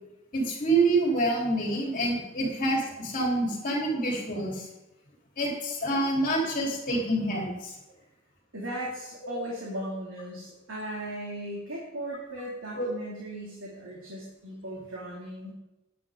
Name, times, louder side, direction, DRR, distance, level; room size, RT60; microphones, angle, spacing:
voice 1, 0.3-4.7 5.4-7.7 12.8-12.9, right 2 dB, 45° left, -2 dB, 3.8 m, -27 dB
voice 2, 8.5-15.5, right 1 dB, 80° right, -4 dB, 2.7 m, -37 dB
13.5 x 10.5 x 3.8 m, 0.96 s
head